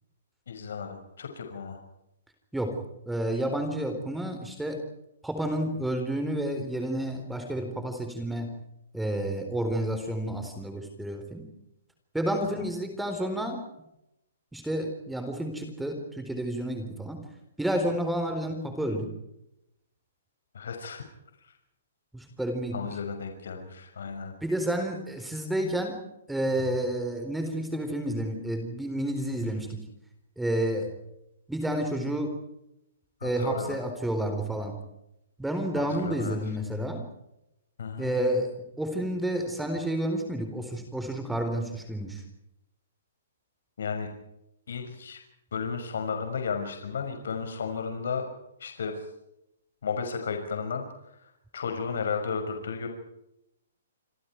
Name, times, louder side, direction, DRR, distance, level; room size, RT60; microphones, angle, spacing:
voice 1, 0.5-1.8 12.4-12.7 20.5-21.0 21.4-21.5 22.7-24.3 33.2-33.8 35.8-36.4 37.8-38.1 43.8-44.1 44.7-45.2 45.5-48.3 48.6-49.0 49.8-52.9, left 5 dB, 75° left, 5 dB, 6.0 m, -34 dB
voice 2, 3.1-4.8 5.2-8.5 8.9-11.4 12.1-13.6 14.5-17.2 17.6-19.1 22.1-22.7 24.4-26.0 26.3-29.8 30.4-30.9 31.5-32.3 33.2-34.8 35.4-37.0 38.0-38.5 38.8-42.2, right 1 dB, 5° right, 5 dB, 4.1 m, -30 dB
27.5 x 26.5 x 4.7 m, 0.84 s
hypercardioid pair, 160°, 0 cm